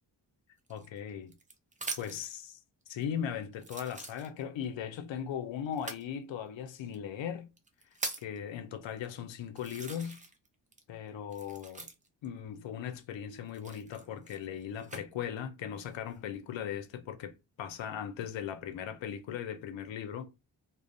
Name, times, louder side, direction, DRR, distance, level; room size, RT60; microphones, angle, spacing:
voice 1, 0.7-1.3 2.0-2.6 2.9-7.5 8.2-10.2 10.9-11.9 12.2-17.3 17.6-20.3, left 8 dB, 75° left, 0.6 m, -38 dB
sound 1, 0.7-2.3 3.0-3.1 3.6-4.6 5.7-6.1 6.9-7.0 7.6-8.4 9.0-9.1 9.6-10.5 10.7-12.3 13.5-15.0 15.7-16.2, right 3 dB, 15° right, 0.5 m, -42 dB
2.4 x 2.0 x 2.5 m
cardioid pair, 55°, 46 cm